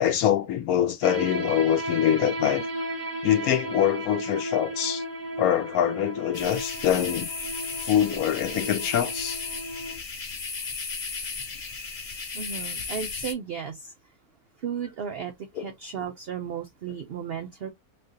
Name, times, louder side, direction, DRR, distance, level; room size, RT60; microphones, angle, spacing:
voice 1, 0.0-2.7 3.2-5.0 5.4-7.3 7.8-9.4 15.6-15.7, left 10 dB, 75° left, 1.0 m, -24 dB
sound 1, 1.0-10.0, right 1 dB, 30° right, 1.1 m, -34 dB
sound 2, 6.3-13.3, left 4 dB, 50° left, 0.4 m, -35 dB
voice 2, 12.3-13.9 14.6-17.7, right 7 dB, 70° right, 0.5 m, -34 dB
3.7 x 3.2 x 2.7 m
omnidirectional pair, 1.6 m